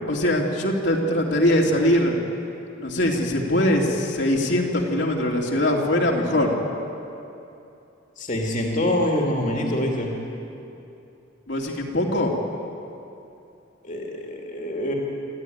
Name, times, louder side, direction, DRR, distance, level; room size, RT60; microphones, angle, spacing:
voice 1, 0.1-2.2 2.8-6.5 11.5-12.3, left 1 dB, 65° left, -1 dB, 2.7 m, -22 dB
voice 2, 8.2-10.1 13.8-14.9, left 1 dB, 40° left, 0 dB, 2.6 m, -25 dB
26.0 x 15.0 x 9.4 m, 2.8 s
head